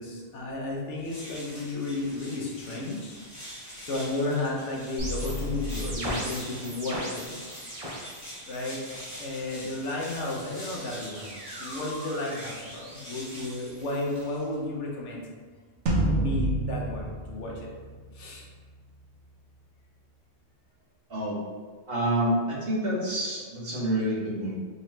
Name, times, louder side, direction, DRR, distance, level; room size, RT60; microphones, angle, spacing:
voice 1, 0.0-3.2 3.8-7.2 8.4-8.8 9.2-15.3 16.2-17.7 18.1-18.5, left 2 dB, 90° left, -2 dB, 1.1 m, -33 dB
sound 1, 0.9-14.6, equal, 15° left, 1.0 m, -44 dB
sound 2, 5.0-8.2 8.5-9.1 10.1-14.2, equal, 35° right, 0.7 m, -38 dB
sound 3, 15.9-18.4, right 1 dB, 80° right, 1.0 m, -28 dB
voice 2, 21.9-24.5, right 1 dB, 60° right, -7 dB, 1.3 m, -27 dB
3.9 x 2.9 x 3.1 m, 1.5 s
omnidirectional pair, 1.2 m